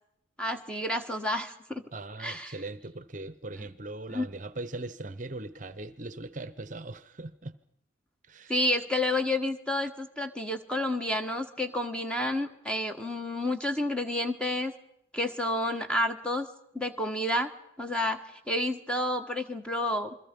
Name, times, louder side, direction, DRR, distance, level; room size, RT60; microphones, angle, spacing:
voice 1, 0.4-1.8 2.2-2.5 4.1-4.3 8.5-14.7 15.1-16.5 16.7-17.5 17.8-18.2 18.5-20.1, left 1 dB, 5° left, 1.4 m, -30 dB
voice 2, 1.9-7.6 8.2-8.6, right 2 dB, 40° right, 0.9 m, -40 dB
29.0 x 22.5 x 5.3 m
head